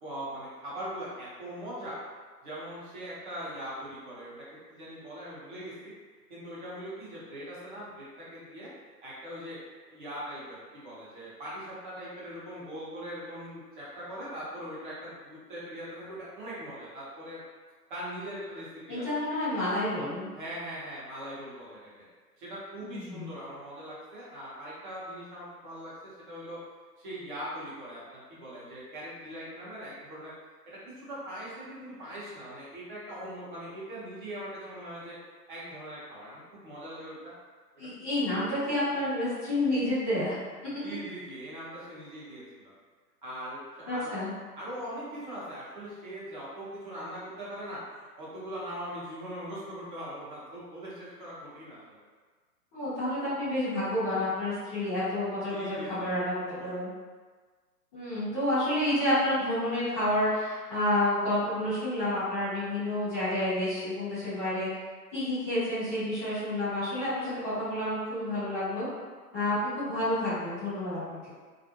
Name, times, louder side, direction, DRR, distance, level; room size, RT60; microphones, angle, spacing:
voice 1, 0.0-2.0 2.4-5.9 6.3-8.7 9.0-9.6 9.9-17.4 17.9-19.1 20.3-22.0 22.4-26.6 27.0-30.3 30.6-35.2 35.5-37.3 40.8-42.7 43.2-44.1 44.5-52.0 55.5-56.1 56.4-56.7, equal, 30° right, -8 dB, 0.8 m, -41 dB
voice 2, 18.9-20.3 22.8-23.3 37.8-40.3 40.9-41.0 43.9-44.3 52.7-56.9 57.9-64.7 65.1-68.9 69.3-71.3, left 1 dB, 10° left, -16 dB, 0.6 m, -29 dB
2.4 x 2.0 x 2.7 m, 1.5 s
figure-of-eight pair, 130°, 49 cm